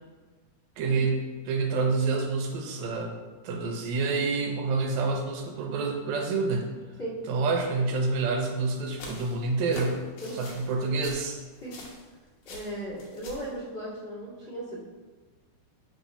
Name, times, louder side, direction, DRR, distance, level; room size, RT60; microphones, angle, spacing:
voice 1, 0.8-3.2 3.4-6.7 7.3-10.0 10.3-11.4, right 3 dB, 75° right, 3 dB, 1.8 m, -28 dB
sound 1, 8.5-12.1 12.4-13.5, left 2 dB, 65° left, 1.9 m, -44 dB
voice 2, 12.4-14.8, right 1 dB, 25° left, -11 dB, 1.9 m, -37 dB
4.7 x 3.9 x 5.5 m, 1.3 s
omnidirectional pair, 3.5 m